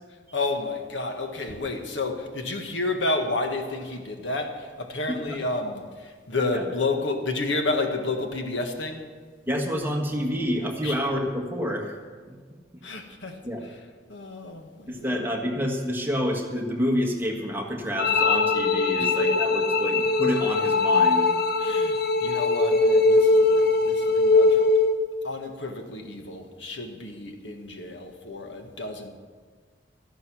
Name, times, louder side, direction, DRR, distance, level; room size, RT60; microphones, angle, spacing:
voice 1, 0.3-9.0 10.8-11.0 12.8-13.8 14.1-15.2 19.0-19.1 21.6-24.7 25.2-29.1, left 2 dB, 85° left, 1.5 m, -31 dB
voice 2, 9.5-11.9 12.3-12.4 13.4-13.6 14.9-21.3, equal, 10° right, 1.5 m, -28 dB
sound 1, 18.0-25.0, left 3 dB, 55° left, 0.8 m, -21 dB
13.0 x 11.5 x 6.1 m
head